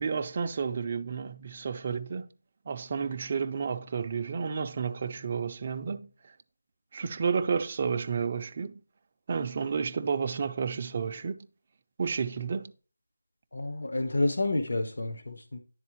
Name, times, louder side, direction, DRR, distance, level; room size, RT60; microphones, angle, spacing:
voice 1, 0.0-2.3 2.7-6.1 6.9-8.8 9.3-11.4 12.0-12.7, right 6 dB, 25° right, 0.4 m, -31 dB
voice 2, 13.5-15.6, left 2 dB, 60° left, 1.0 m, -29 dB
10.5 x 3.9 x 3.0 m
figure-of-eight pair, 170°, 0 cm